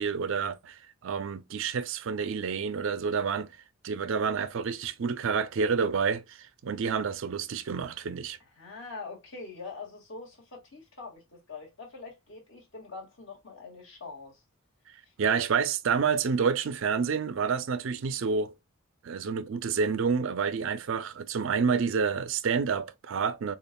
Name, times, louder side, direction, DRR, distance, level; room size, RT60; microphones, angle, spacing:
voice 1, 0.0-3.5 3.8-8.4 15.2-18.5 19.0-23.5, right 5 dB, 60° right, 0.4 m, -29 dB
voice 2, 8.6-14.4 15.0-15.1, left 4 dB, 55° left, 1.8 m, -44 dB
6.6 x 2.4 x 2.2 m
head